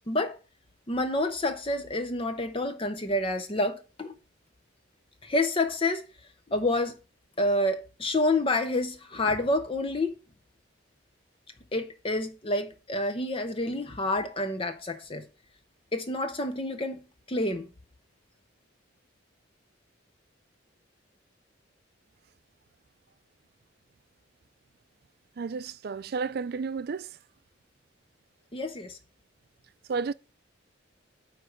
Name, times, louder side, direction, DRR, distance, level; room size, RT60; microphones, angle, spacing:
voice 1, 0.9-4.1 5.2-6.0 6.5-6.9 7.4-10.1 11.7-15.2 15.9-17.0 17.3-17.7 28.5-29.0, left 2 dB, 25° left, 0.6 m, -28 dB
voice 2, 25.4-27.2 29.9-30.1, right 5 dB, 50° right, 0.4 m, -32 dB
9.5 x 3.3 x 6.3 m
head